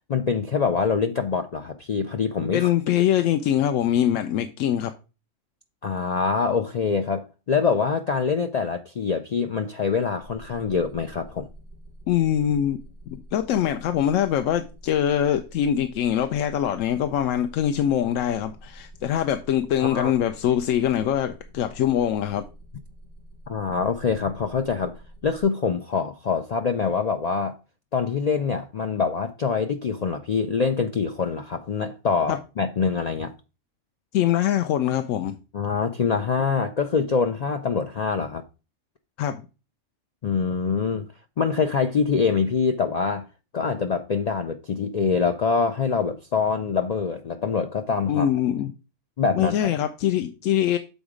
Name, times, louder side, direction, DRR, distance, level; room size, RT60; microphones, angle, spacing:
voice 1, 0.1-2.7 5.8-11.5 19.8-20.1 23.5-27.6 27.9-33.3 35.5-38.4 40.2-41.1 41.4-43.3 43.5-48.3 49.2-49.7, left 5 dB, 60° left, 0.4 m, -25 dB
voice 2, 2.5-4.9 12.1-12.8 13.1-22.4 32.3-32.4 34.1-35.4 39.2-39.5 48.1-48.7 49.3-50.8, left 10 dB, 90° left, 1.0 m, -23 dB
sound 1, 10.2-25.4, right 1 dB, 40° left, 1.7 m, -47 dB
7.1 x 3.9 x 4.9 m
omnidirectional pair, 1.3 m